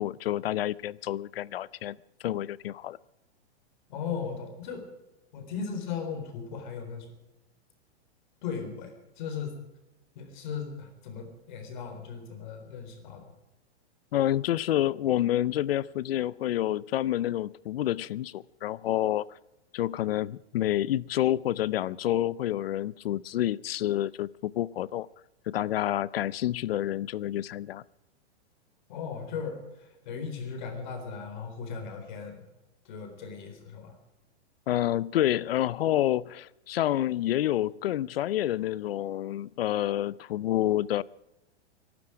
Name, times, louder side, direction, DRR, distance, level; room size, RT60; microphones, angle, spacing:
voice 1, 0.0-2.0 2.2-3.0 14.1-19.3 19.7-25.1 25.5-27.8 34.7-41.0, left 13 dB, 60° left, 0.6 m, -28 dB
voice 2, 3.9-4.9 5.3-7.1 8.4-9.6 10.2-13.3 28.9-32.4 32.8-33.9, left 6 dB, 45° left, 4.0 m, -37 dB
22.5 x 12.0 x 4.9 m
supercardioid pair, 175°, 33 cm